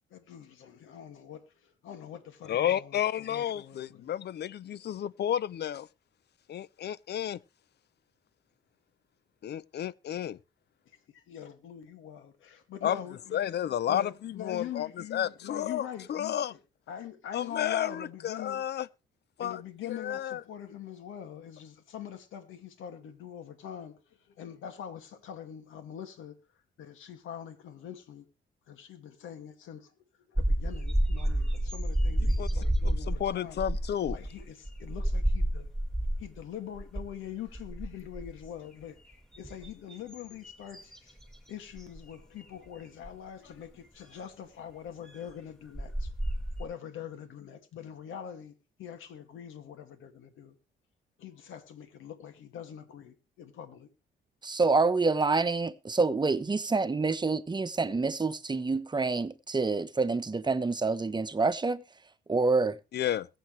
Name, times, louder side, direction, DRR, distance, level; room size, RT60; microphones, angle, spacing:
voice 1, 0.1-4.1 11.1-13.5 13.9-16.6 16.9-18.6 19.4-26.3 26.8-28.3 28.7-29.9 30.3-33.6 34.1-35.6 36.2-41.2 41.5-46.1 46.6-48.5 48.8-50.6 51.2-53.9, left 9 dB, 80° left, 2.3 m, -43 dB
voice 2, 2.5-5.9 6.5-7.4 9.4-10.4 12.8-13.0 13.3-15.8 16.1-16.5 17.3-18.9 19.4-19.6 19.9-20.4 32.4-32.5 32.8-34.2 62.9-63.3, left 10 dB, 55° left, 0.7 m, -31 dB
sound 1, 30.4-36.4 36.7-37.1 37.5-38.5 39.1-41.4 41.8-42.0 43.0-43.1 45.3-45.4 45.7-46.6, right 1 dB, ahead, 2.7 m, -30 dB
voice 3, 54.4-61.8 62.3-62.8, right 3 dB, 20° right, 1.1 m, -27 dB
22.0 x 7.9 x 3.3 m
cardioid pair, 90°, 20 cm